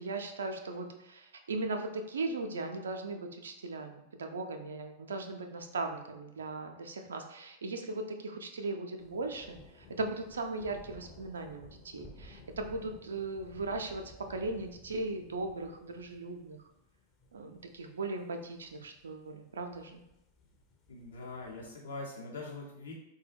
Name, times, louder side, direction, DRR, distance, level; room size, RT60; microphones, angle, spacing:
voice 1, 0.0-16.6 17.3-20.0, right 3 dB, 70° right, 5 dB, 0.4 m, -38 dB
sound 1, 9.0-21.8, left 2 dB, 30° left, 0.7 m, -56 dB
voice 2, 20.9-22.9, left 3 dB, 70° left, -3 dB, 0.9 m, -43 dB
4.1 x 2.2 x 3.3 m, 0.86 s
figure-of-eight pair, 90°, 0 cm